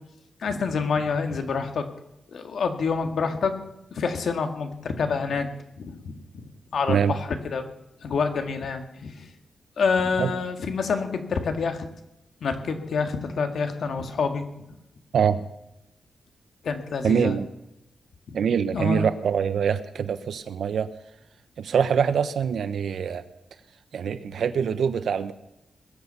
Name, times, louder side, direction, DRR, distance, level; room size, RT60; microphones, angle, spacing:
voice 1, 0.4-1.9 2.3-3.6 3.9-5.5 5.8-6.1 6.7-7.6 8.0-9.3 9.8-11.9 12.4-14.4 16.6-17.4 18.3-18.4 18.7-19.1, left 5 dB, 70° left, 6 dB, 1.9 m, -27 dB
voice 2, 17.0-17.5 18.3-20.9 21.6-23.2 23.9-25.3, right 7 dB, 75° right, 12 dB, 1.0 m, -24 dB
21.0 x 8.3 x 7.0 m, 0.87 s
wide cardioid pair, 155°, 0 cm